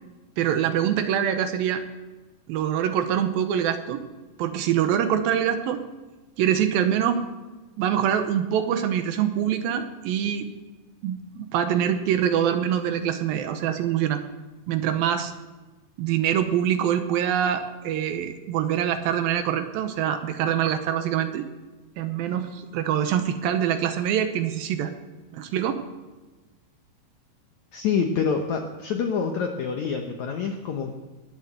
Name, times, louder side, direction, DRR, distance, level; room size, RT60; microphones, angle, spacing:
voice 1, 0.4-1.8 2.5-4.0 4.4-5.8 6.4-7.3 7.8-10.5 11.0-14.2 14.7-15.3 16.0-21.5 22.0-24.9 25.3-25.8, right 9 dB, 75° right, 8 dB, 2.4 m, -24 dB
voice 2, 27.7-30.9, left 6 dB, 80° left, 4 dB, 1.7 m, -26 dB
20.0 x 7.1 x 7.9 m, 1.2 s
omnidirectional pair, 4.6 m